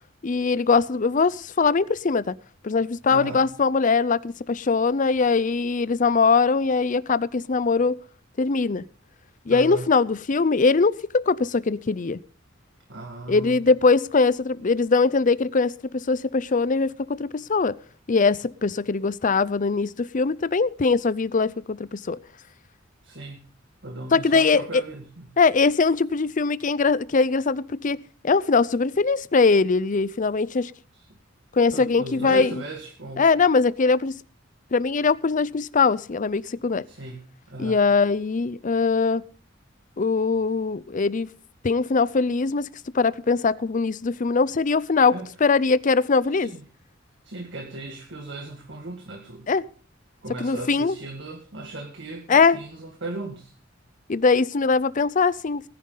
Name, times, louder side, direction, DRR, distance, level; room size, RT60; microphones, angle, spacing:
voice 1, 0.2-2.4 2.6-8.0 8.4-8.8 9.5-12.2 13.3-17.8 18.1-22.2 24.1-24.7 25.4-28.0 28.2-30.7 31.5-32.6 33.2-34.1 34.7-36.8 37.6-39.2 40.0-41.3 41.6-42.7 42.9-46.5 49.5-49.7 50.4-50.9 52.3-52.6 54.1-55.6, left 4 dB, 40° left, 0.6 m, -21 dB
voice 2, 3.1-3.4 9.5-9.9 12.9-13.6 23.0-23.5 23.8-25.4 30.9-31.1 31.7-33.3 36.9-37.2 37.5-37.8 45.1-45.3 46.3-46.6 47.2-49.5 50.2-53.5, right 2 dB, 65° right, 2.0 m, -36 dB
19.0 x 10.5 x 3.9 m
head